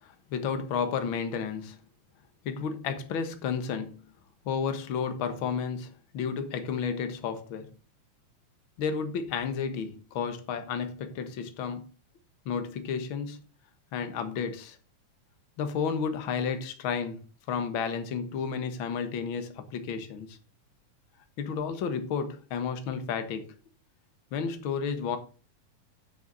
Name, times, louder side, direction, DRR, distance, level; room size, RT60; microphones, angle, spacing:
voice 1, 0.0-1.8 2.4-4.0 4.5-7.7 8.8-11.9 12.5-13.4 13.9-14.8 15.6-20.4 21.4-23.6 24.3-25.2, left 6 dB, 50° left, 1.7 m, -32 dB
9.5 x 6.1 x 5.2 m
omnidirectional pair, 3.5 m